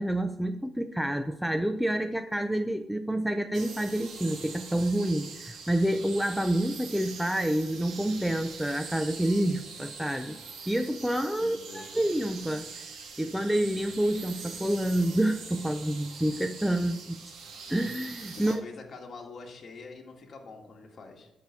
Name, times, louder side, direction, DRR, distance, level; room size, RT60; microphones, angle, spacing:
voice 1, 0.0-10.4 10.7-12.7 13.2-17.2 17.7-18.6, right 1 dB, 5° right, 8 dB, 0.5 m, -28 dB
sound 1, 3.5-18.6, right 5 dB, 75° right, 2.1 m, -43 dB
voice 2, 11.4-12.1 18.4-21.3, left 4 dB, 45° left, 0 dB, 1.8 m, -45 dB
12.0 x 4.8 x 6.6 m, 0.91 s
cardioid pair, 90°, 0 cm